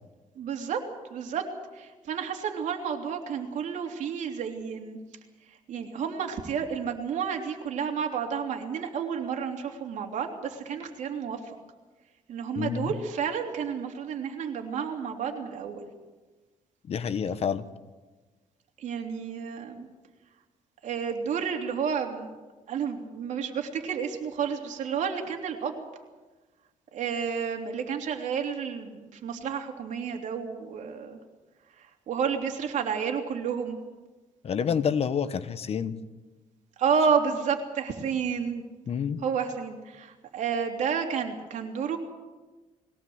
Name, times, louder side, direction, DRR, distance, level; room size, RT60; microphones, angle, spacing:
voice 1, 0.3-0.8 1.1-1.4 1.7-5.0 5.5-11.6 12.3-15.9 18.8-19.9 20.8-22.3 22.7-25.9 26.9-31.2 31.8-33.8 36.8-38.6 39.2-42.0, right 6 dB, 70° right, 3 dB, 3.2 m, -31 dB
voice 2, 12.6-12.9 16.9-17.6 34.4-36.0 38.9-39.2, left 7 dB, 50° left, 13 dB, 1.1 m, -28 dB
21.5 x 17.0 x 8.0 m, 1.2 s
cardioid pair, 115°, 13 cm